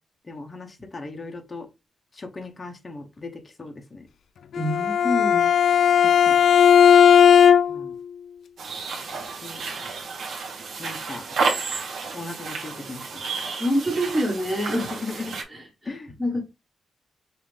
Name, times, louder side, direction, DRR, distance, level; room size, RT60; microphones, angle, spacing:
voice 1, 0.3-1.7 2.1-3.3 3.6-4.1 6.0-6.3 7.7-7.9 9.4-9.6 10.8-11.4 12.1-13.4 14.7-15.3 15.9-16.1, left 3 dB, 25° left, 0.8 m, -37 dB
Bowed string instrument, 4.5-7.9, left 8 dB, 80° left, 0.3 m, -16 dB
voice 2, 4.5-5.5 13.6-14.9 15.5-15.9 16.2-16.4, equal, 5° right, 1.5 m, -26 dB
sound 1, 8.6-15.4, right 4 dB, 75° right, 1.1 m, -31 dB
5.6 x 2.5 x 3.4 m
wide cardioid pair, 155°, 0 cm